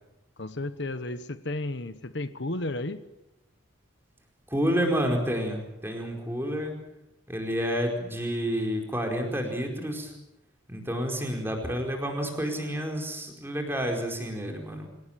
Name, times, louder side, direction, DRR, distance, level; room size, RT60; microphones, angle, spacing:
voice 1, 0.4-3.0, left 2 dB, 60° left, 11 dB, 1.2 m, -33 dB
voice 2, 4.5-6.8 7.3-10.1 10.7-14.9, equal, 10° right, 2 dB, 4.8 m, -29 dB
27.0 x 18.0 x 9.0 m, 0.92 s
head